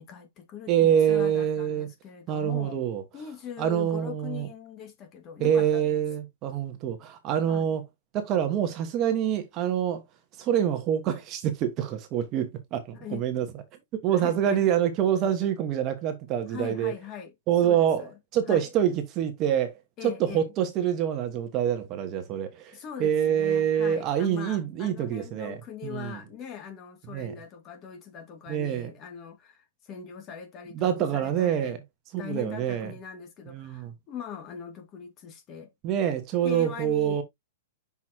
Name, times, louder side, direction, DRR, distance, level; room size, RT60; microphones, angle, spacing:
voice 1, 0.0-2.8 3.1-6.0 7.4-7.7 12.9-13.2 14.1-14.6 16.5-17.3 17.6-18.1 18.5-18.7 20.0-20.5 22.7-31.8 32.2-35.7 36.4-37.2, left 8 dB, 25° left, 1.7 m, -41 dB
voice 2, 0.7-1.9 2.3-3.0 3.6-4.5 5.4-7.8 8.1-10.0 10.4-13.5 14.0-16.9 17.5-26.2 27.1-27.3 28.5-28.9 30.7-31.8 32.1-32.9 33.5-33.9 35.8-37.2, right 9 dB, 30° right, 1.3 m, -26 dB
6.2 x 5.6 x 2.8 m
hypercardioid pair, 155°, 0 cm